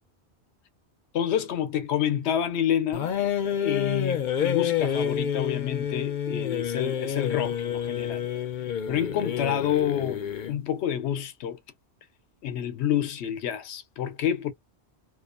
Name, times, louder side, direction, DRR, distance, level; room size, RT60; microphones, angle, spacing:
voice 1, 1.1-3.1 3.6-8.2 8.9-11.6 12.4-14.5, left 9 dB, 90° left, 0.9 m, -28 dB
sound 1, 2.9-10.6, left 8 dB, 55° left, 0.6 m, -29 dB
2.5 x 2.2 x 2.4 m
omnidirectional pair, 1.1 m